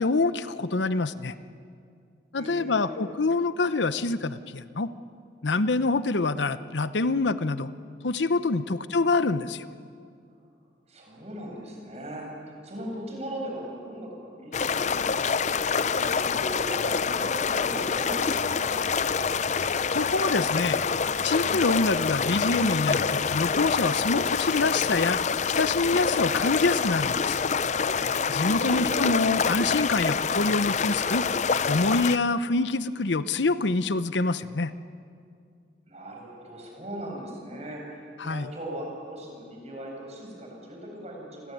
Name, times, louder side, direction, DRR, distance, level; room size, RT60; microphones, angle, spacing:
voice 1, 0.0-1.3 2.3-4.9 5.4-7.7 8.0-9.7 19.9-20.8 21.2-25.2 25.5-27.4 28.3-31.3 31.7-34.7 38.2-38.5, left 3 dB, 80° left, 13 dB, 0.9 m, -26 dB
voice 2, 2.4-3.1 8.6-9.0 10.9-16.1 16.3-19.3 28.4-29.2 35.9-41.5, right 1 dB, 35° right, 0 dB, 7.7 m, -39 dB
sound 1, 14.5-32.2, left 6 dB, 40° left, 0.6 m, -26 dB
29.5 x 21.0 x 9.4 m, 2.3 s
head